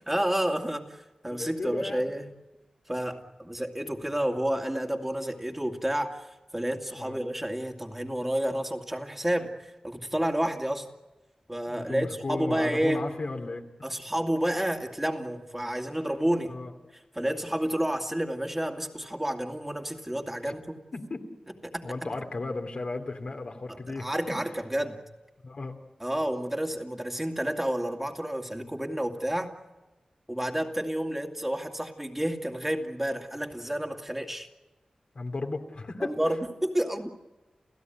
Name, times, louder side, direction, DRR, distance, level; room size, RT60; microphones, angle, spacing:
voice 1, 0.1-2.3 2.9-10.9 11.5-13.1 13.8-16.5 17.1-20.8 21.6-22.1 23.7-25.0 26.0-29.5 30.3-34.5 36.0-37.1, right 1 dB, 10° right, 3 dB, 2.3 m, -30 dB
voice 2, 1.3-2.1 6.9-7.2 11.7-13.6 16.4-16.7 20.5-20.6 20.9-21.2 21.8-24.3 25.4-25.8 35.1-36.1, left 3 dB, 65° left, 4 dB, 2.8 m, -35 dB
30.0 x 16.5 x 9.3 m, 1.1 s
wide cardioid pair, 75°, 2 cm